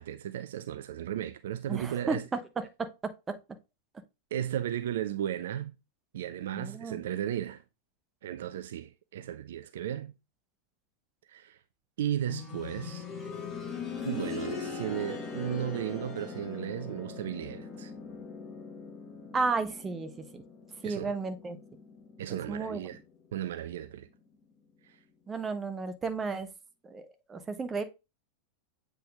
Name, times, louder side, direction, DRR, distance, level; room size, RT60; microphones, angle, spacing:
voice 1, 0.0-2.2 4.3-5.7 6.1-7.6 8.2-10.1 11.3-11.6 12.0-13.1 14.0-17.9 20.8-21.2 22.2-23.0 23.3-24.1 24.8-25.0, right 11 dB, 60° right, 0.4 m, -35 dB
voice 2, 1.7-3.4 6.5-7.0 19.3-20.4 20.8-21.6 22.3-22.8 25.3-26.5 26.8-27.8, right 4 dB, 15° right, 0.8 m, -33 dB
sound 1, 12.3-23.0 23.3-23.4 24.3-24.4, left 5 dB, 20° left, 1.6 m, -41 dB
7.8 x 3.5 x 3.5 m
figure-of-eight pair, 90°, 0 cm